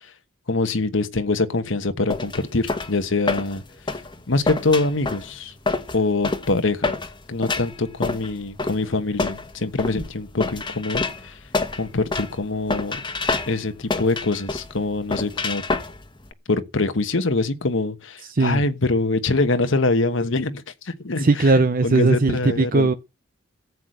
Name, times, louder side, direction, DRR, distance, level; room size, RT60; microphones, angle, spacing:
voice 1, 0.5-3.6 4.3-5.5 5.9-7.0 7.3-11.4 11.8-13.0 13.5-15.6 16.5-21.3 21.8-23.0, left 3 dB, 70° left, 1.2 m, -24 dB
sound 1, 2.1-16.3, left 3 dB, 25° left, 1.3 m, -28 dB
voice 2, 18.3-18.6 21.2-22.9, right 3 dB, 45° right, 0.7 m, -18 dB
14.0 x 8.3 x 7.9 m
head